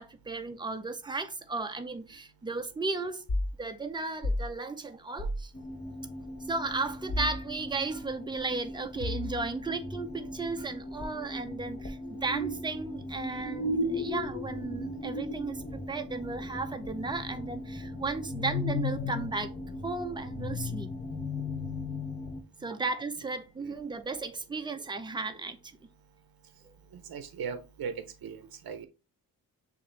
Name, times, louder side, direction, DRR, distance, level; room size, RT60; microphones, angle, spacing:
voice 1, 0.0-3.2 3.6-5.5 6.5-19.5 19.8-20.9 22.6-25.6 26.6-26.7, right 3 dB, 15° right, 0.6 m, -35 dB
sound 1, 3.3-3.5 4.2-4.5 5.2-5.4 7.1-7.4 9.0-9.5, left 1 dB, 50° left, 1.4 m, -31 dB
sound 2, 5.5-22.4, left 2 dB, 30° left, 1.0 m, -37 dB
voice 2, 26.9-28.9, right 6 dB, 80° right, 0.6 m, -39 dB
6.4 x 2.6 x 3.2 m
wide cardioid pair, 110°, 35 cm